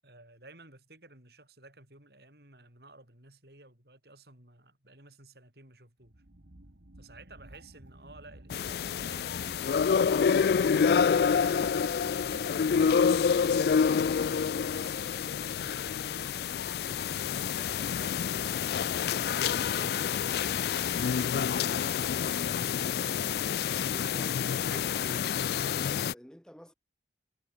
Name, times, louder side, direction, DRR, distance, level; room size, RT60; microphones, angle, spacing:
voice 1, 0.0-6.2 7.0-10.2 11.0-13.5 13.9-20.5 20.9-22.7, right 2 dB, 65° right, 7.4 m, -55 dB
sound 1, 6.0-15.1, right 1 dB, 80° right, 2.1 m, -53 dB
sound 2, 8.5-26.1, left 7 dB, 60° left, 0.3 m, -28 dB
voice 2, 23.9-26.7, equal, 5° left, 1.8 m, -49 dB
head